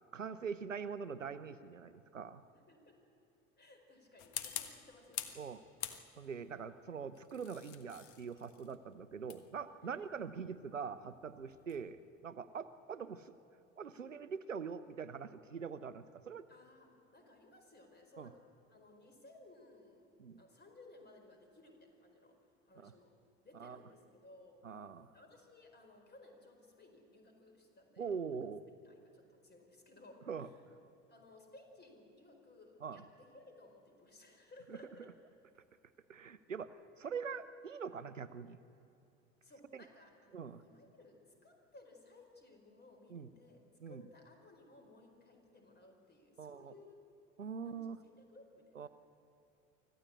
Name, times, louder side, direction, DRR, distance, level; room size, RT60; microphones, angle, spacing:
voice 1, 0.1-2.4 5.4-5.6 6.2-13.3 13.8-16.5 18.2-18.3 20.2-20.4 22.8-22.9 23.6-23.8 24.6-25.1 28.0-28.6 30.3-30.5 32.8-33.0 34.7-34.8 36.1-38.6 39.7-39.8 40.3-40.6 43.1-43.3 43.8-44.0 46.4-46.7 47.4-48.0 48.7-48.9, right 6 dB, 90° right, 14 dB, 0.7 m, -43 dB
voice 2, 2.5-3.0 3.6-5.3 9.8-10.2 16.5-18.4 18.7-20.1 20.4-22.4 22.6-23.1 23.4-24.6 25.1-28.4 28.8-30.6 31.1-35.1 39.4-40.3 40.6-43.6 43.8-47.0 47.6-48.9, left 2 dB, 25° left, 4 dB, 4.8 m, -60 dB
sound 1, 4.2-5.4 5.8-6.4 7.1-11.9, left 11 dB, 50° left, 1.5 m, -46 dB
25.0 x 15.5 x 8.4 m, 2.7 s
figure-of-eight pair, 65°, 37 cm